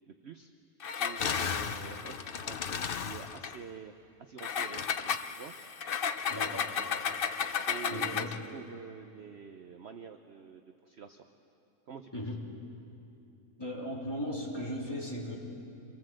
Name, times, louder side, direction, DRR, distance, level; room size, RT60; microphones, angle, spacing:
voice 1, 0.1-0.5 1.0-3.9 4.2-5.5 7.7-11.2 11.9-12.1, right 7 dB, 50° right, 7 dB, 0.9 m, -47 dB
Engine, 0.8-3.6 4.4-8.4, left 7 dB, 55° left, 0.6 m, -33 dB
voice 2, 6.3-6.7 7.9-8.3 12.1-12.4 13.6-15.4, left 1 dB, 15° left, -3 dB, 3.3 m, -37 dB
26.5 x 18.5 x 7.7 m, 2.7 s
omnidirectional pair, 1.7 m